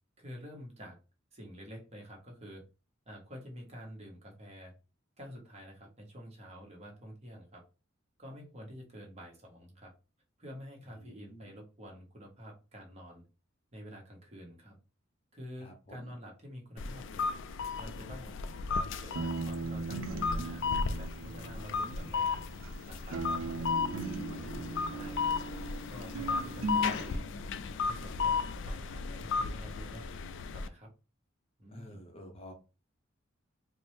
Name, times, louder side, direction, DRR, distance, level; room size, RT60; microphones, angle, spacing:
voice 1, 0.2-1.0 1.3-2.6 3.0-4.7 5.2-7.6 8.2-9.9 10.4-13.2 13.7-14.8 15.3-17.3 17.8-18.3 18.7-22.4 22.9-25.3 25.9-27.2 27.8-30.1 30.5-30.9 31.6-32.0, equal, 35° right, 0 dB, 1.1 m, -49 dB
voice 2, 11.0-11.5 15.6-16.1 21.6-22.1 26.2-26.4 31.7-32.5, equal, 30° left, 3 dB, 0.7 m, -50 dB
sound 1, 16.8-30.7, left 5 dB, 65° left, 0.3 m, -35 dB
sound 2, 19.2-22.8 23.1-25.9 26.1-27.2, right 3 dB, 80° right, 0.6 m, -39 dB
sound 3, 23.7-28.7, right 4 dB, 55° right, 1.2 m, -47 dB
4.3 x 2.1 x 3.1 m, 0.31 s
head